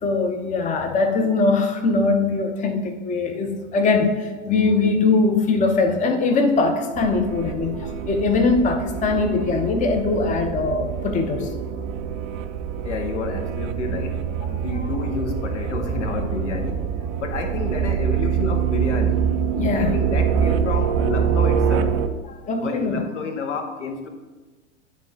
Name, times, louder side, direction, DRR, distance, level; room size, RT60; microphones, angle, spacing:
voice 1, 0.0-11.5 14.7-14.9 19.5-20.0 22.5-23.0, left 3 dB, 20° left, 5 dB, 0.8 m, -21 dB
sound 1, 6.9-22.1, right 8 dB, 30° right, 0.4 m, -25 dB
voice 2, 12.8-16.9 17.2-19.3 19.7-22.0 22.5-24.1, left 4 dB, 70° left, 6 dB, 1.2 m, -30 dB
10.5 x 3.7 x 4.1 m, 1.2 s
figure-of-eight pair, 95°, 37 cm